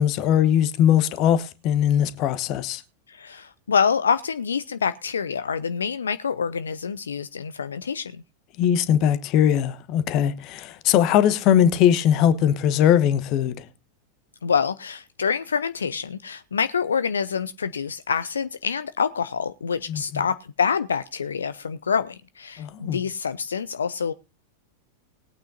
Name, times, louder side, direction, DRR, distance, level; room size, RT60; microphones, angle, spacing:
voice 1, 0.0-2.8 8.6-13.6 19.9-20.0 22.6-23.0, left 10 dB, 40° left, 1.0 m, -20 dB
voice 2, 3.1-8.2 14.4-24.1, left 6 dB, 70° left, 0.4 m, -26 dB
20.0 x 8.9 x 2.7 m
figure-of-eight pair, 90°, 0 cm